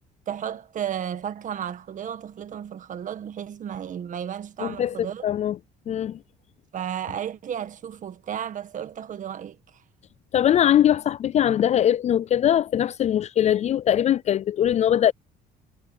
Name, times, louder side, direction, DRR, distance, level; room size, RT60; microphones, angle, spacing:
voice 1, 0.3-5.3 6.7-9.6, right 9 dB, 50° right, 1.7 m, -33 dB
voice 2, 4.6-5.6 5.9-6.2 10.3-15.1, left 10 dB, 40° left, 0.4 m, -21 dB
cardioid pair, 110°, 17 cm